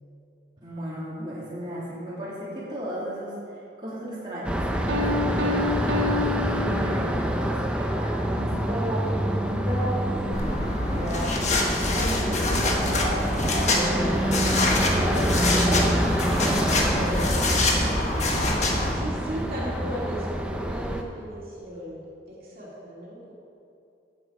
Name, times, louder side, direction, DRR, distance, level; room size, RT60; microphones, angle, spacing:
voice 1, 0.6-6.0 6.5-10.4 10.8-14.4 14.7-15.9 16.3-18.3, equal, 25° right, -8 dB, 2.7 m, -34 dB
sound 1, 4.4-21.0, right 1 dB, 5° right, 0.7 m, -27 dB
Piano, 4.9-7.3, left 3 dB, 90° right, 1.1 m, -28 dB
sound 2, 10.3-18.9, left 2 dB, 40° left, 1.5 m, -25 dB
voice 2, 18.9-23.3, right 1 dB, 50° right, -6 dB, 2.8 m, -36 dB
15.5 x 8.1 x 4.9 m, 2.6 s
head